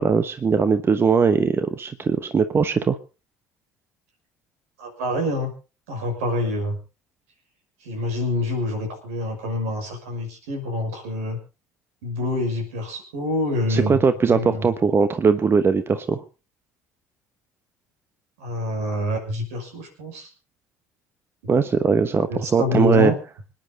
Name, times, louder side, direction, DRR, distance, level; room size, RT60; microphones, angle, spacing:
voice 1, 0.0-3.0 13.7-16.2 21.5-23.1, right 5 dB, 30° right, 11 dB, 1.1 m, -20 dB
voice 2, 4.8-5.5 5.9-6.8 7.8-11.4 12.0-14.0 14.3-14.7 18.4-20.3 22.3-23.1, left 1 dB, 70° right, 3 dB, 6.0 m, -26 dB
26.0 x 10.0 x 4.0 m, 0.33 s
figure-of-eight pair, 60°, 8 cm